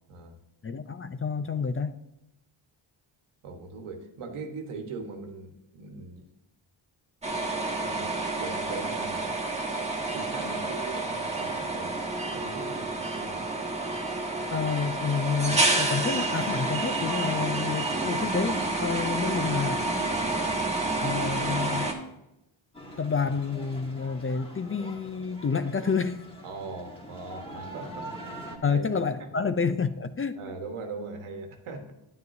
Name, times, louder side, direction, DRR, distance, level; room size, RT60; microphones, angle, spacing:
voice 1, 0.6-2.0 14.5-19.8 21.0-21.9 23.0-26.2 28.6-30.4, left 5 dB, 30° left, 11 dB, 0.4 m, -29 dB
voice 2, 3.4-6.3 7.7-9.3 10.1-12.0 12.3-13.4 19.2-19.5 26.4-28.2 28.7-28.8 29.2-29.3 30.4-31.9, right 3 dB, 85° right, 5 dB, 1.4 m, -40 dB
sound 1, 7.2-21.9, right 2 dB, 15° right, 1.4 m, -29 dB
sound 2, 22.7-28.6, right 1 dB, 10° left, 1.6 m, -43 dB
9.4 x 9.4 x 2.7 m, 0.91 s
cardioid pair, 85°, 49 cm